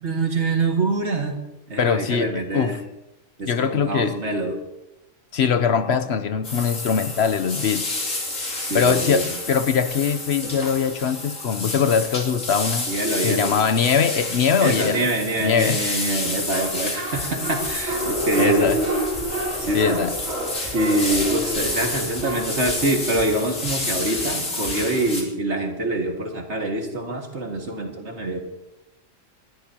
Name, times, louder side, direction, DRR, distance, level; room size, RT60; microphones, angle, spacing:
voice 1, 0.0-1.4 1.7-2.8 3.4-4.6 8.6-9.3 12.9-13.6 14.6-18.7 19.6-20.0 20.7-28.4, right 2 dB, 60° right, 2 dB, 2.3 m, -25 dB
voice 2, 1.8-2.8 3.5-4.2 5.3-7.9 8.5-12.9 13.2-15.1 15.4-15.8 18.4-18.8 19.7-20.1, left 7 dB, 60° left, 11 dB, 0.9 m, -22 dB
sound 1, 6.4-25.2, left 2 dB, 85° left, 3.3 m, -30 dB
sound 2, 15.5-22.9, equal, 80° right, 4.3 m, -29 dB
sound 3, 17.1-25.1, equal, 15° left, 7.9 m, -43 dB
29.5 x 13.0 x 2.9 m, 0.94 s
omnidirectional pair, 1.3 m